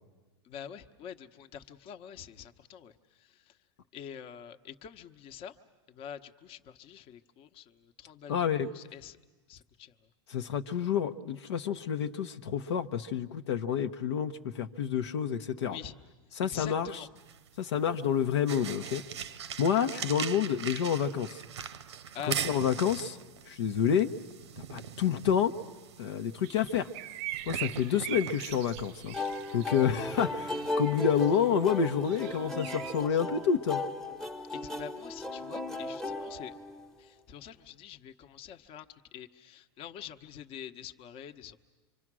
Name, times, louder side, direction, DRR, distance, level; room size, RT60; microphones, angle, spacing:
voice 1, 0.4-3.6 3.9-5.6 5.9-9.2 9.5-10.1 15.6-15.9 16.4-17.1 22.1-22.5 34.5-36.5 37.0-41.6, left 9 dB, 40° left, 8 dB, 1.0 m, -46 dB
voice 2, 8.3-8.7 10.3-15.8 16.4-16.9 17.6-19.0 19.6-21.4 22.4-23.2 23.5-24.1 24.7-25.5 26.0-26.9 27.5-29.2 29.5-33.8, left 8 dB, 80° left, 6 dB, 0.9 m, -28 dB
sound 1, 17.2-30.7, right 8 dB, 90° right, 0.9 m, -42 dB
sound 2, 26.4-33.0, right 14 dB, 50° right, 0.7 m, -43 dB
sound 3, 29.1-37.1, left 2 dB, 5° left, 0.9 m, -36 dB
25.5 x 25.0 x 6.2 m, 1.3 s
hypercardioid pair, 115°, 14 cm